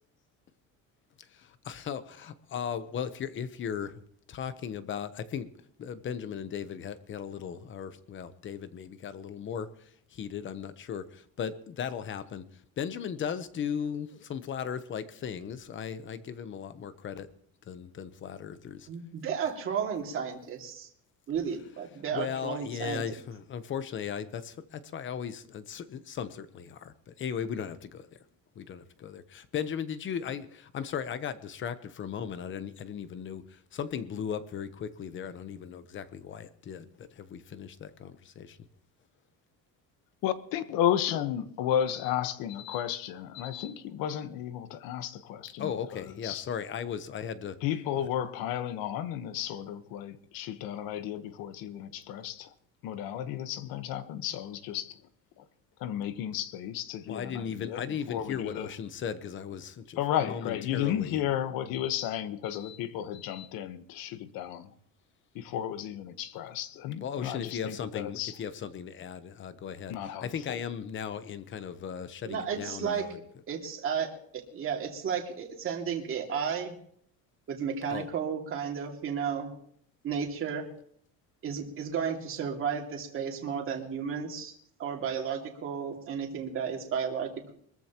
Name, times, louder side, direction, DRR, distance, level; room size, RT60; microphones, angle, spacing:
voice 1, 1.2-4.0 4.3-5.5 5.8-17.3 17.6-18.9 22.1-28.2 28.5-38.6 45.6-47.6 47.9-48.1 57.1-61.2 67.0-73.2 77.9-78.1, left 8 dB, 35° left, 1.0 m, -37 dB
voice 2, 18.9-20.9 21.3-23.0 72.2-73.1 73.5-76.8 77.5-79.5 80.0-80.7 81.4-84.5 84.8-87.5, right 7 dB, 40° right, 2.4 m, -33 dB
voice 3, 40.2-46.4 47.6-52.5 52.8-55.0 55.4-55.5 55.8-57.8 58.1-58.7 60.0-64.7 65.3-68.3 69.9-70.6, left 10 dB, 75° left, 1.3 m, -33 dB
23.5 x 14.0 x 3.0 m
cardioid pair, 170°, 35 cm